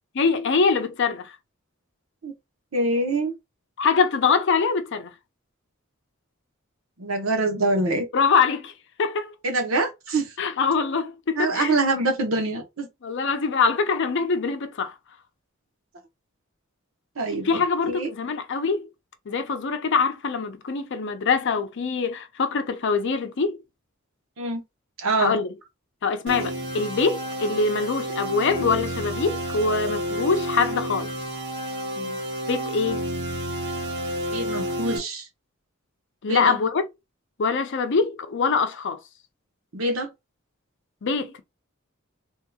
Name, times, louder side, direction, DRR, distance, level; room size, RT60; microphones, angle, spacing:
voice 1, 0.2-1.4 3.8-5.1 8.1-8.7 9.0-9.3 10.4-11.7 13.0-14.9 17.4-18.9 19.3-23.6 25.2-25.5 26.0-31.1 32.0-32.2 32.5-33.0 36.2-36.9 37.4-39.0 41.0-41.4, left 5 dB, 60° left, 0.5 m, -24 dB
voice 2, 2.7-3.3 7.0-8.1 9.4-10.3 11.4-12.9 17.2-17.6 17.9-18.1 24.4-24.6 25.0-25.4 34.3-35.3 36.3-36.6 39.7-40.1, right 2 dB, 85° right, 0.9 m, -25 dB
sound 1, 26.3-35.0, equal, 55° right, 0.9 m, -30 dB
3.6 x 2.7 x 2.3 m
head